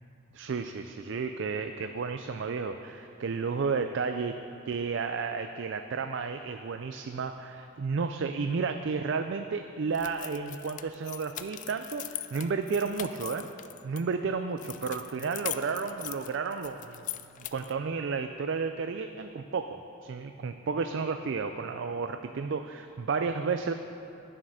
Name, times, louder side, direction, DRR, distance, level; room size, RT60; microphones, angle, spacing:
voice 1, 0.3-4.4 4.7-13.5 13.8-17.0 17.5-23.7, right 5 dB, 55° right, 7 dB, 0.4 m, -32 dB
sound 1, 9.9-14.0 14.6-17.8, left 13 dB, 35° left, 0.3 m, -41 dB
11.0 x 7.4 x 6.4 m, 2.8 s
head